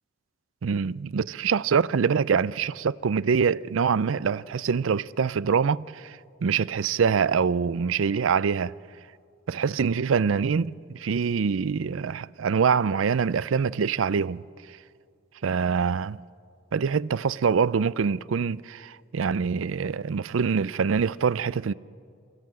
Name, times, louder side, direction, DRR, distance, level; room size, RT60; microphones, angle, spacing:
voice 1, 0.6-8.7 9.5-14.4 15.4-16.2 16.7-21.7, right 6 dB, 90° right, 0.5 m, -25 dB
28.5 x 16.0 x 7.7 m
head